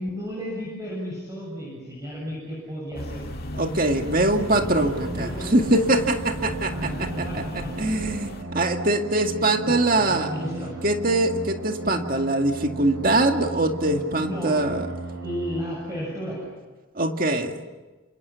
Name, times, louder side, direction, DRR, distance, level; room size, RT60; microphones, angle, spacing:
voice 1, 0.0-3.2 4.1-4.2 4.6-5.8 6.7-7.9 9.6-10.9 14.2-14.6 15.2-16.4, equal, 15° right, -4 dB, 7.2 m, -33 dB
sound 1, 2.9-8.4, left 1 dB, 45° left, 2.2 m, -36 dB
voice 2, 3.5-7.4 7.8-10.3 10.8-15.0 17.0-17.6, right 2 dB, 40° right, 4 dB, 2.1 m, -23 dB
sound 2, 4.3-15.6, right 2 dB, 80° right, 4.9 m, -36 dB
28.0 x 27.5 x 7.1 m, 1.2 s
head